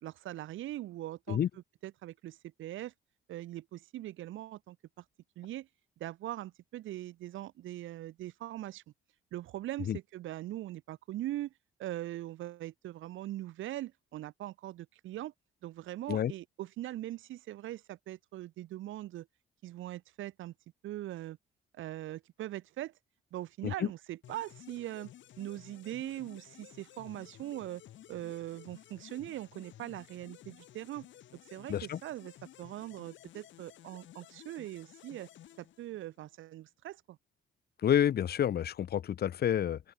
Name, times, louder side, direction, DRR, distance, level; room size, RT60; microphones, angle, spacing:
voice 1, 0.0-2.9 3.3-5.0 5.4-5.7 6.0-8.8 9.3-11.5 11.8-15.3 15.6-19.3 19.6-20.5 20.8-21.4 21.7-22.9 23.3-25.1 25.4-27.8 28.1-31.1 31.5-32.3 32.6-35.3 35.6-37.2, right 14 dB, 80° right, 1.1 m, -41 dB
sound 1, 24.2-36.3, left 12 dB, 70° left, 1.6 m, -55 dB
voice 2, 31.7-32.0 37.8-39.8, left 10 dB, 55° left, 0.8 m, -29 dB
open air
cardioid pair, 90°, 20 cm